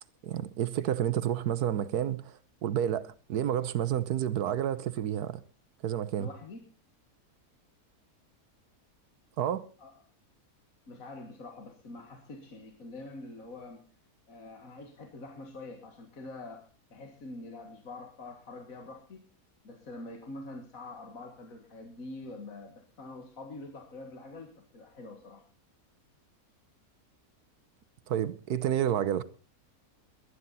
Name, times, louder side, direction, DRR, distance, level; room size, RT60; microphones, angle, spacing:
voice 1, 0.2-5.4 5.8-6.3 9.4-9.6 28.1-29.2, right 10 dB, 85° right, 1.4 m, -30 dB
voice 2, 6.2-6.6 9.8-10.0 10.9-13.9 14.3-19.3 19.6-25.4, left 2 dB, 65° left, 2.2 m, -45 dB
19.0 x 12.0 x 4.1 m
omnidirectional pair, 1.6 m